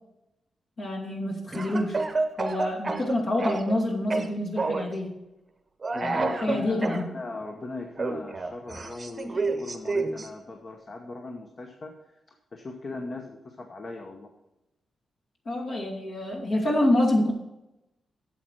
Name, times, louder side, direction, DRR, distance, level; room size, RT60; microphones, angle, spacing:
voice 1, 0.8-2.0 2.4-5.1 6.0-7.1 15.5-17.3, left 1 dB, 55° left, -1 dB, 2.3 m, -27 dB
Speech / Cough, 1.5-3.8 4.1-4.9 5.8-7.0 8.0-10.3, right 3 dB, 30° right, 0.8 m, -29 dB
voice 2, 5.9-11.9 12.5-14.3, left 3 dB, 40° left, 3 dB, 0.9 m, -38 dB
8.5 x 7.4 x 4.6 m, 0.93 s
wide cardioid pair, 130°, 0 cm